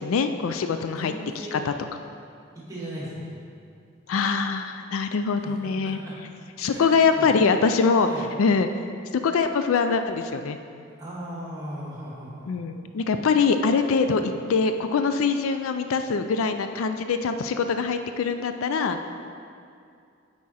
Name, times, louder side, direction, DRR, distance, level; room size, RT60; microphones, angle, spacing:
voice 1, 0.0-1.1 1.5-1.7 4.1-6.0 6.6-8.1 8.4-8.7 9.1-10.6 12.5-19.0, left 5 dB, 80° left, 8 dB, 0.4 m, -23 dB
voice 2, 0.7-1.6 2.5-3.3 5.4-6.1 6.6-7.3 8.0-8.3 11.0-12.5 14.1-14.3, equal, 15° right, -6 dB, 1.7 m, -37 dB
8.5 x 4.8 x 4.2 m, 2.4 s
head